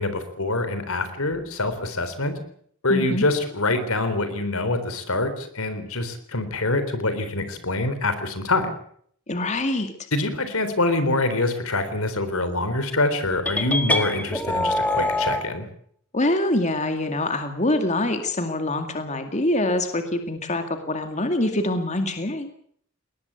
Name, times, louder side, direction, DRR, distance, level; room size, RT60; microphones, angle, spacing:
voice 1, 0.0-2.4 2.8-8.7 10.1-15.7, left 2 dB, 75° left, 11 dB, 3.8 m, -25 dB
voice 2, 2.9-3.3 9.3-9.9 16.1-22.5, left 1 dB, 35° left, 7 dB, 2.2 m, -25 dB
sound 1, 13.4-15.4, left 1 dB, 5° left, 1.7 m, -24 dB
21.0 x 19.5 x 8.4 m, 0.63 s
head